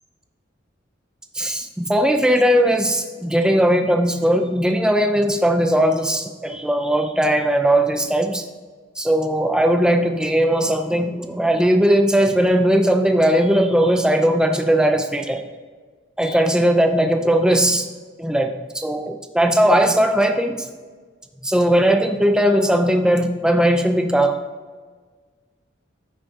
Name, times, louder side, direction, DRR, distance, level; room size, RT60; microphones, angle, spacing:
voice 1, 1.3-8.5 9.0-15.4 16.2-17.9 18.2-20.7 21.4-24.3, right 1 dB, 5° right, 5 dB, 0.5 m, -18 dB
13.0 x 5.6 x 2.8 m, 1.5 s
head